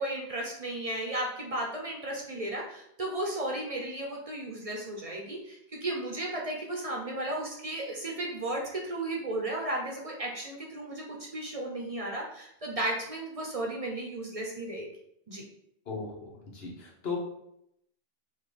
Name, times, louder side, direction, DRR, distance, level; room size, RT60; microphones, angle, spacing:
voice 1, 0.0-11.0 11.3-14.9 15.3-15.4, right 1 dB, 40° right, -1 dB, 0.8 m, -34 dB
voice 2, 15.9-17.2, left 5 dB, 75° left, -1 dB, 1.3 m, -37 dB
6.1 x 2.5 x 3.3 m, 0.77 s
omnidirectional pair, 1.1 m